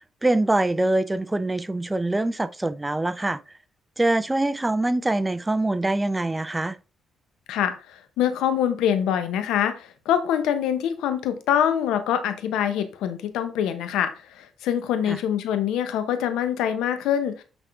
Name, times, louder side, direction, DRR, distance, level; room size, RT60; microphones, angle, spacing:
voice 1, 0.2-3.4 4.0-6.8 15.1-15.2, right 2 dB, 15° right, 0.4 m, -24 dB
voice 2, 8.2-17.4, left 9 dB, 90° left, 0.9 m, -24 dB
8.1 x 3.6 x 3.5 m
cardioid pair, 90°, 0 cm